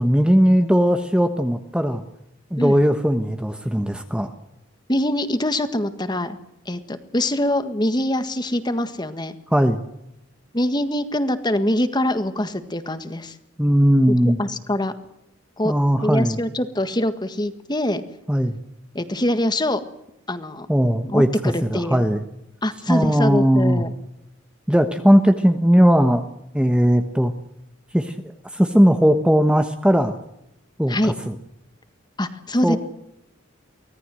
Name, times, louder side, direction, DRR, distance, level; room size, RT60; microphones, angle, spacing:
voice 1, 0.0-2.0 2.5-4.3 9.5-9.8 13.6-14.4 15.6-16.4 18.3-18.6 20.7-22.2 22.9-23.8 24.7-26.3 26.5-27.3 27.9-28.1 28.5-30.2 30.8-31.3 32.6-32.8, equal, 5° right, 7 dB, 1.1 m, -18 dB
voice 2, 4.9-6.4 6.6-9.4 10.5-13.4 14.1-14.9 15.6-15.7 16.0-18.0 18.9-19.8 20.3-20.7 21.0-22.0 22.6-23.9 30.9-31.1 32.2-32.8, left 1 dB, 20° left, 10 dB, 1.7 m, -24 dB
24.5 x 18.0 x 7.7 m, 0.82 s
head